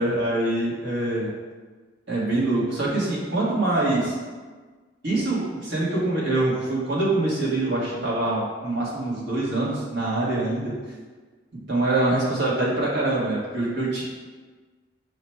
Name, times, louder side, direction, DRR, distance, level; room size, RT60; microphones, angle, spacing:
voice 1, 0.0-1.3 2.1-4.2 5.0-10.7 11.7-14.0, right 2 dB, 75° right, -6 dB, 1.3 m, -24 dB
4.9 x 2.1 x 4.5 m, 1.4 s
head